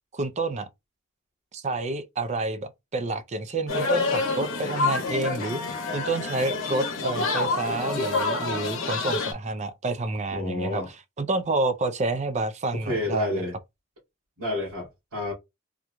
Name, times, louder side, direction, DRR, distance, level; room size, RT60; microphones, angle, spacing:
voice 1, 0.1-0.7 1.5-5.6 5.9-13.4, right 2 dB, 30° right, 0.4 m, -29 dB
sound 1, 3.7-9.3, left 3 dB, 60° left, 0.9 m, -27 dB
voice 2, 10.3-10.9 12.7-13.6 14.4-15.3, left 1 dB, 85° right, 2.0 m, -29 dB
3.6 x 2.9 x 2.2 m
head